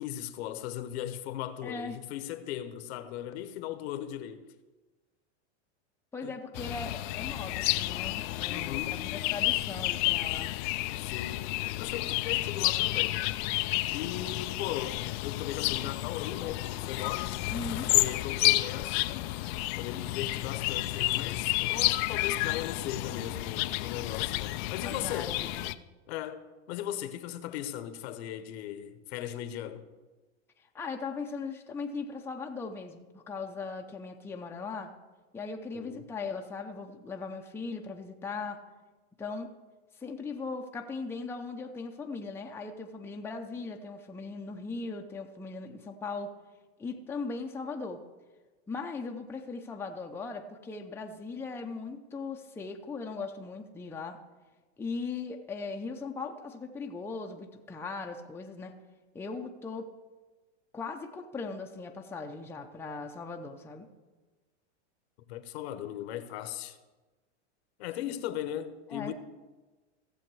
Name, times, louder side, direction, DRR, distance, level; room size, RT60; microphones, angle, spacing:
voice 1, 0.0-4.4 6.2-6.4 8.5-9.0 11.0-11.5 11.8-13.2 13.9-17.4 17.9-19.0 19.8-25.4 26.1-29.9 35.7-36.0 65.3-66.8 67.8-69.1, left 11 dB, 65° left, 1.0 m, -38 dB
voice 2, 1.6-2.0 6.1-10.5 17.5-17.9 24.8-25.7 30.6-34.9 35.3-38.6 39.2-39.5 40.0-46.3 46.8-48.0 48.7-54.2 54.8-58.7 59.1-59.9 60.7-63.9 68.9-69.1, left 4 dB, 5° left, 0.7 m, -39 dB
sound 1, 6.5-25.7, left 19 dB, 45° left, 0.4 m, -31 dB
16.0 x 7.1 x 4.7 m
supercardioid pair, 125°, 35 cm